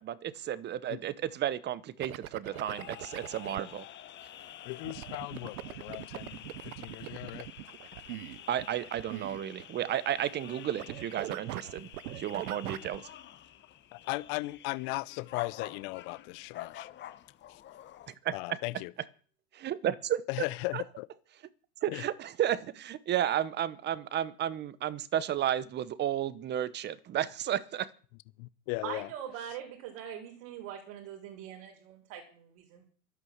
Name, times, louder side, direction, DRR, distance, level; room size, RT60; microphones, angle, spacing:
voice 1, 0.0-3.8 8.5-13.1 18.1-18.6 19.5-20.2 20.7-20.8 21.8-27.9, right 11 dB, 25° right, 0.9 m, -33 dB
sound 1, 2.0-3.6 4.8-9.9 10.2-10.5 10.8-13.0, right 15 dB, 75° right, 1.1 m, -41 dB
sound 2, 2.5-18.1, left 11 dB, 25° left, 1.0 m, -48 dB
voice 2, 4.6-7.5 13.9-16.9 17.5-17.6 18.3-18.9 20.3-21.1 21.9-22.0 28.4-29.1, left 22 dB, 45° left, 0.8 m, -37 dB
voice 3, 28.8-32.9, right 9 dB, 55° right, 5.2 m, -42 dB
11.5 x 11.0 x 8.0 m
supercardioid pair, 140°, 44 cm